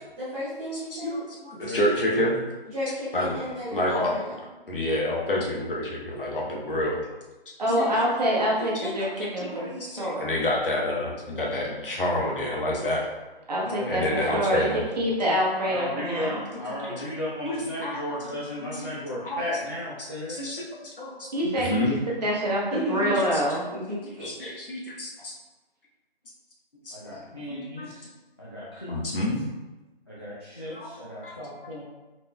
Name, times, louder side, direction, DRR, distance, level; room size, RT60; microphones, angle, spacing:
voice 1, 0.2-1.2 2.7-4.4 7.7-8.0 22.7-23.2 23.7-24.3, equal, 10° right, -13 dB, 1.4 m, -33 dB
voice 2, 0.9-2.4 3.1-3.4 3.7-4.1 4.7-7.1 7.8-8.1 8.6-13.0 13.9-14.8 16.7-17.1 17.4-18.0 18.6-19.7 20.0-21.3 21.6-22.0 23.3-23.6 24.2-25.3 26.8-26.9 27.5-27.9 28.9-29.5 30.7-31.0 31.2-31.3, left 1 dB, 60° left, -3 dB, 1.0 m, -29 dB
voice 3, 7.6-9.7 10.0-10.3 13.5-14.7 15.0-16.5 21.3-23.6 27.1-27.7, equal, 40° right, -4 dB, 0.9 m, -26 dB
voice 4, 13.6-14.0 15.6-20.4 26.9-28.1 28.4-29.3 30.1-31.8, left 1 dB, 25° left, -9 dB, 0.4 m, -35 dB
4.0 x 3.5 x 2.2 m, 1.1 s
figure-of-eight pair, 160°, 31 cm